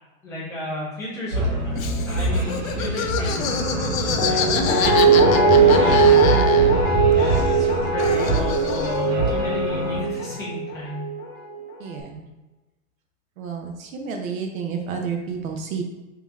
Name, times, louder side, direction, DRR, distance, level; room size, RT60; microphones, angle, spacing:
voice 1, 0.2-4.5 5.5-6.4 7.1-11.1, left 1 dB, 5° left, -8 dB, 0.6 m, -33 dB
sound 1, 1.3-10.0, right 2 dB, 50° right, 1.4 m, -25 dB
Laughter, 1.8-6.9 7.2-9.1, left 7 dB, 80° left, 0.6 m, -28 dB
Guitar, 4.2-11.2 11.5-11.6, right 3 dB, 35° left, 0.8 m, -19 dB
voice 2, 11.8-12.3 13.4-15.8, right 6 dB, 75° right, 3 dB, 0.8 m, -30 dB
3.8 x 2.9 x 3.5 m, 1.1 s
supercardioid pair, 165°, 41 cm